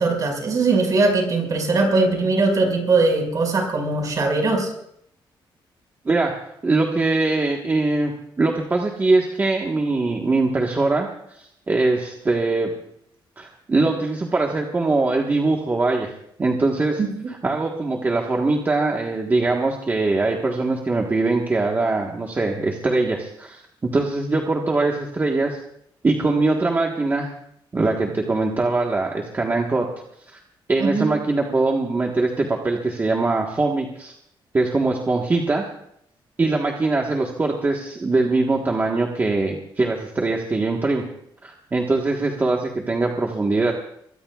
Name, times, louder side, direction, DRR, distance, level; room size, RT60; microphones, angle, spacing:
voice 1, 0.0-4.7 17.0-17.1 30.8-31.1, right 3 dB, 45° right, 2 dB, 5.7 m, -20 dB
voice 2, 6.0-8.1 8.4-12.7 13.4-16.1 16.4-17.0 17.3-25.6 26.0-27.3 27.7-29.9 30.3-30.4 30.7-34.1 34.5-35.7 36.4-41.0 41.4-43.7, right 3 dB, 20° right, 0 dB, 1.5 m, -22 dB
24.5 x 23.0 x 2.4 m, 0.73 s
wide cardioid pair, 165°, 9 cm